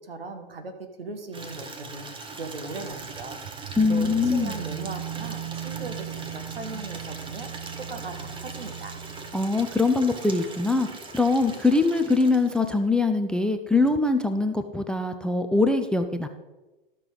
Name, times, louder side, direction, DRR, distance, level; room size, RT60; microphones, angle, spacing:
voice 1, 0.1-2.0 2.4-3.4 3.9-7.5 7.8-9.0, right 3 dB, 80° right, 5 dB, 1.5 m, -38 dB
Water tap faucet / Liquid, 1.3-12.9, right 3 dB, 15° right, 1.2 m, -41 dB
sound 1, 2.9-10.3, right 9 dB, 50° right, 0.9 m, -38 dB
voice 2, 3.8-4.5 9.3-10.9 11.1-16.3, left 3 dB, 5° left, 8 dB, 0.3 m, -23 dB
12.5 x 5.9 x 4.9 m, 1.1 s
figure-of-eight pair, 95°, 29 cm